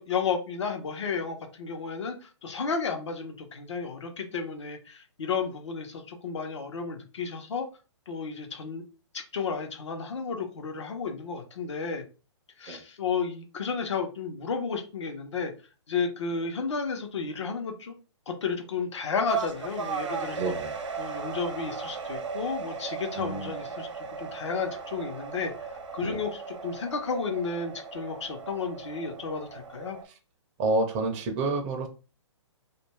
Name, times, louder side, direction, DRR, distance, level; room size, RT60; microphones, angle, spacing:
voice 1, 0.0-7.7 8.1-8.8 9.1-12.1 12.6-15.5 15.9-17.9 18.3-20.4 21.0-25.5 25.9-30.0, left 5 dB, 70° left, 0.8 m, -32 dB
sound 1, 19.3-30.0, right 5 dB, 80° right, 0.8 m, -37 dB
voice 2, 20.4-20.7 23.2-23.5 26.0-26.2 30.0-30.1 30.6-31.9, right 2 dB, 20° right, 0.4 m, -29 dB
2.5 x 2.2 x 3.0 m
hypercardioid pair, 150°, 15 cm